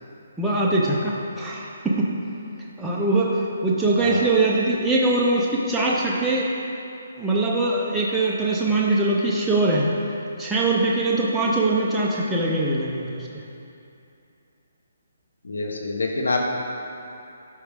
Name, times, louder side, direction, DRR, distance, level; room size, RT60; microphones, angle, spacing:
voice 1, 0.4-2.1 2.8-6.5 7.2-9.9 10.4-13.3, right 2 dB, 5° right, -6 dB, 0.6 m, -22 dB
voice 2, 15.4-16.4, left 3 dB, 90° left, 1 dB, 1.2 m, -26 dB
12.5 x 4.8 x 3.6 m, 2.7 s
hypercardioid pair, 165°, 0 cm